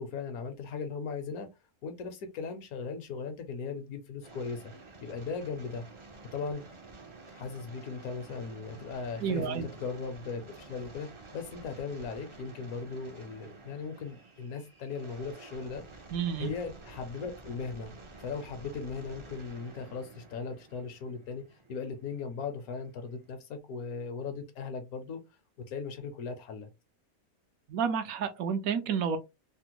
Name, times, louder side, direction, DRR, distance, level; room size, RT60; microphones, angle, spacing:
voice 1, 0.0-1.5 1.8-4.6 5.0-5.8 6.3-6.7 7.3-15.8 16.4-17.9 18.2-25.2 25.6-26.7, left 5 dB, 75° left, 1.2 m, -38 dB
sound 1, 4.2-23.3, right 3 dB, 45° right, 0.3 m, -51 dB
voice 2, 9.2-9.6 16.1-16.5 27.7-29.2, right 7 dB, 80° right, 1.1 m, -30 dB
3.4 x 2.1 x 2.8 m
omnidirectional pair, 1.5 m